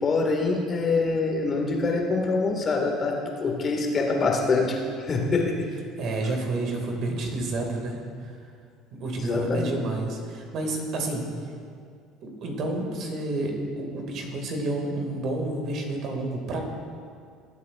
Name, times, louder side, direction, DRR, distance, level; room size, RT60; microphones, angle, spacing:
voice 1, 0.0-5.7 9.2-9.7, left 3 dB, 35° left, 1 dB, 2.1 m, -25 dB
voice 2, 6.0-8.3 8.9-11.2 12.2-16.6, right 2 dB, 55° right, 2 dB, 2.3 m, -30 dB
21.5 x 8.3 x 2.6 m, 2.2 s
hypercardioid pair, 65°, 0 cm